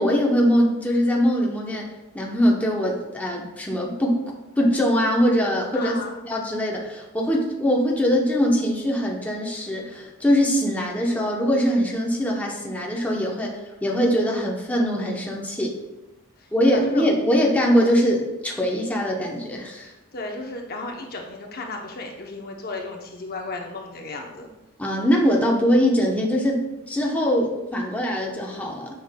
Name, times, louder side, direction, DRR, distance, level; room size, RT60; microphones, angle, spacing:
voice 1, 0.0-1.9 2.1-4.2 4.6-5.9 6.2-15.8 16.5-19.9 24.8-26.6 26.9-28.9, equal, 5° left, -2 dB, 0.8 m, -22 dB
voice 2, 5.7-6.2 16.4-17.0 19.8-24.5, left 3 dB, 45° left, 2 dB, 0.7 m, -34 dB
9.1 x 5.7 x 2.2 m, 1.0 s
head